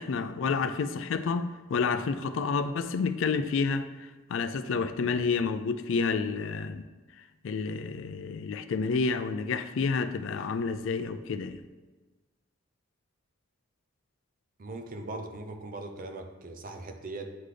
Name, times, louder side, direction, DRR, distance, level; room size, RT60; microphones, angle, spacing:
voice 1, 0.0-3.9 4.3-6.8 7.4-11.6, left 4 dB, 65° left, 0.4 m, -29 dB
voice 2, 14.6-17.3, right 2 dB, 40° right, 0.5 m, -40 dB
9.3 x 3.9 x 3.3 m
head